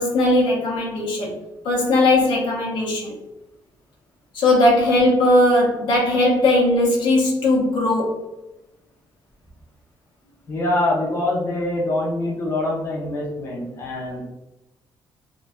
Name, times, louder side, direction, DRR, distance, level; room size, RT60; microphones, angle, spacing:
voice 1, 0.0-1.3 1.6-3.1 4.3-8.2, left 1 dB, 80° left, -3 dB, 0.7 m, -18 dB
voice 2, 10.5-14.2, left 1 dB, 35° left, -3 dB, 0.6 m, -24 dB
2.5 x 2.2 x 2.3 m, 0.99 s
cardioid pair, 140°, 8 cm